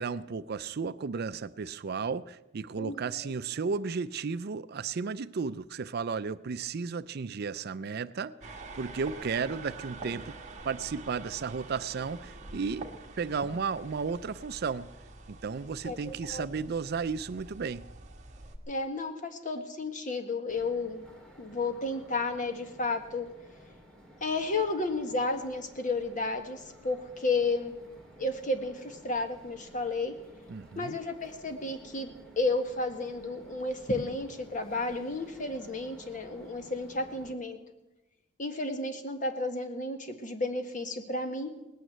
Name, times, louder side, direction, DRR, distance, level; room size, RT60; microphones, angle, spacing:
voice 1, 0.0-10.4 10.6-12.9 13.2-14.9 15.3-17.8 30.5-31.0, right 5 dB, 55° right, 15 dB, 0.5 m, -34 dB
sound 1, 8.4-18.6, right 3 dB, 40° right, 1.6 m, -46 dB
voice 2, 15.8-16.5 18.7-21.0 21.4-23.3 24.2-27.7 28.2-30.1 30.7-32.1 32.4-37.6 38.4-41.5, left 2 dB, 40° left, 6 dB, 1.6 m, -32 dB
sound 2, 20.5-37.3, equal, 5° left, 2.5 m, -54 dB
19.0 x 9.3 x 7.9 m, 1.0 s
head